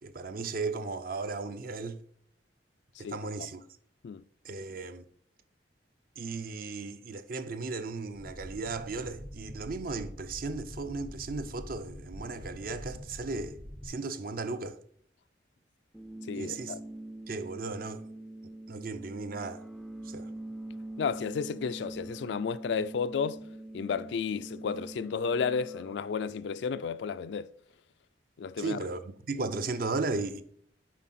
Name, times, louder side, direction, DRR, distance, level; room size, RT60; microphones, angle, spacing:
voice 1, 0.0-2.0 3.0-3.6 4.4-5.0 6.2-13.6 13.8-14.8 16.4-16.8 17.3-18.0 18.7-19.6 20.1-20.3 28.6-30.4, right 3 dB, 50° right, 0.5 m, -36 dB
sound 1, 8.1-13.9, equal, 70° right, 2.8 m, -45 dB
sound 2, 15.9-25.9, right 1 dB, ahead, 0.4 m, -44 dB
voice 2, 16.3-16.8 21.0-23.4 23.7-27.5 28.4-28.8, left 6 dB, 70° left, 0.3 m, -32 dB
7.3 x 4.9 x 4.2 m
head